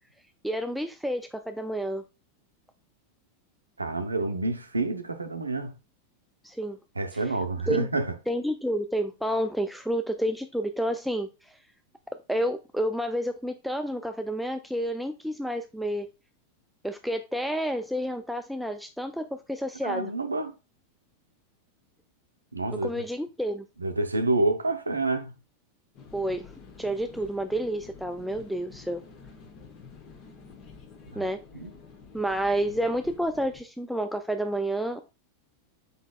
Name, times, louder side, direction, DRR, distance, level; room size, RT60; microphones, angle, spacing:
voice 1, 0.4-2.0 6.4-6.8 7.7-7.9 8.3-11.5 12.3-16.1 16.8-20.1 22.8-23.6 26.1-29.0 31.1-31.4 32.1-35.0, equal, ahead, 0.3 m, -30 dB
voice 2, 3.8-5.7 6.9-8.2 19.8-20.5 22.5-22.9 23.8-25.3 31.1-31.7, right 2 dB, 80° right, 0.6 m, -28 dB
sound 1, 25.9-33.6, left 5 dB, 35° left, 1.0 m, -49 dB
5.3 x 3.9 x 2.3 m
figure-of-eight pair, 90°, 0 cm